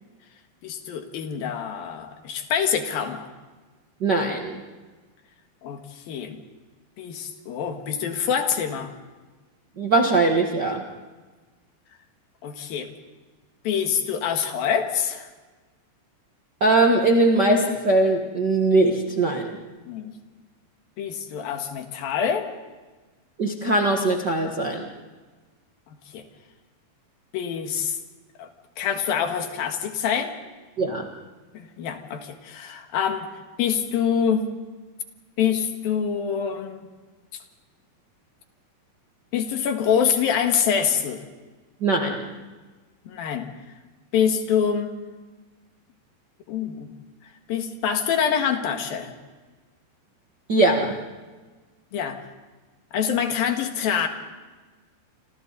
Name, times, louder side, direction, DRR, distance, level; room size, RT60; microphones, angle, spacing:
voice 1, 0.6-3.3 5.6-6.4 7.0-8.9 12.4-12.9 13.6-15.3 19.8-20.1 21.0-22.5 26.1-26.2 27.3-28.0 28.4-28.5 28.8-30.3 31.5-33.3 33.6-34.5 35.4-36.8 39.3-41.2 43.1-43.5 44.1-44.9 46.5-46.9 47.5-49.1 51.9-52.2 52.9-54.1, left 7 dB, 70° left, 5 dB, 3.4 m, -25 dB
voice 2, 4.0-4.6 9.8-10.8 16.6-19.6 23.4-24.9 30.8-31.1 41.8-42.3 50.5-50.9, right 2 dB, 50° right, 2 dB, 1.3 m, -21 dB
29.5 x 26.0 x 4.1 m, 1.3 s
omnidirectional pair, 4.4 m